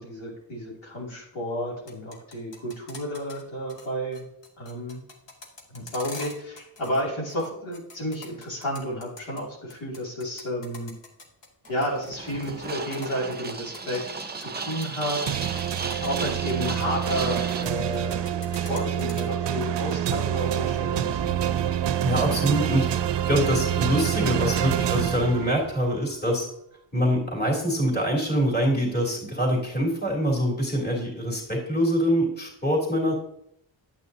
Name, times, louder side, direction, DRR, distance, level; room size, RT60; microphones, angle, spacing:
voice 1, 0.0-4.3 4.6-5.0 5.7-10.9 11.7-15.3 16.0-21.4, equal, 85° left, -4 dB, 2.7 m, -31 dB
sound 1, 1.7-3.4 3.7-3.9 4.1-7.0 7.3-9.4 9.7-14.4 14.7-15.0 15.4-17.7 17.9-19.2, left 3 dB, 65° left, 1.5 m, -44 dB
sound 2, 11.7-17.6, right 4 dB, 20° right, 0.6 m, -35 dB
sound 3, 15.3-25.9, right 10 dB, 70° right, 0.6 m, -27 dB
voice 2, 21.6-26.5 26.9-33.1, equal, 20° left, -3 dB, 2.8 m, -25 dB
8.8 x 8.3 x 2.7 m, 0.75 s
cardioid pair, 85°, 46 cm